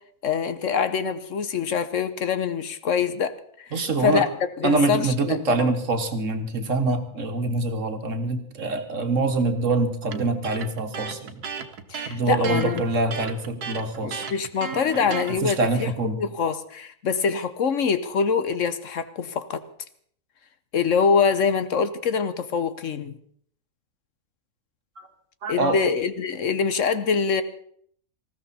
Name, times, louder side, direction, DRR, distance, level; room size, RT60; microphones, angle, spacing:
voice 1, 0.2-3.7 4.0-4.3 4.6-5.7 11.9-12.8 14.0-15.9 16.2-19.6 20.7-23.2 25.5-27.4, left 6 dB, 60° left, 12 dB, 1.1 m, -24 dB
voice 2, 3.7-4.3 4.6-11.4 12.1-14.3 15.0-16.2 25.0-25.1 25.4-25.8, right 2 dB, 55° right, 7 dB, 1.7 m, -25 dB
Electric guitar, 10.1-15.4, right 6 dB, 80° right, 1.7 m, -34 dB
19.5 x 15.5 x 4.2 m, 0.62 s
omnidirectional pair, 1.6 m